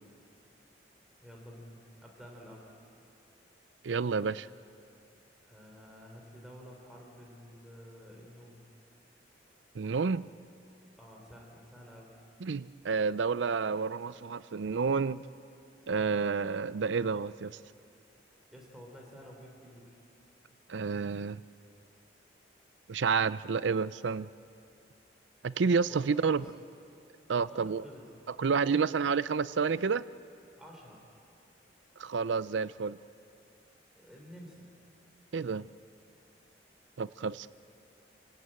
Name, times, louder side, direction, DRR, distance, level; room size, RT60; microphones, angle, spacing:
voice 1, 1.2-2.7 5.4-8.6 11.0-12.1 18.5-20.0 25.9-26.4 27.5-28.0 28.6-28.9 30.6-31.0 33.9-34.6, equal, 5° right, -1 dB, 3.5 m, -51 dB
voice 2, 3.8-4.5 9.7-10.3 12.4-15.2 15.9-17.5 20.7-21.4 22.9-24.3 25.4-26.4 27.3-27.8 28.4-30.0 32.0-33.0 35.3-35.7 37.0-37.5, right 5 dB, 80° right, 17 dB, 0.5 m, -29 dB
27.5 x 17.5 x 9.0 m, 2.6 s
head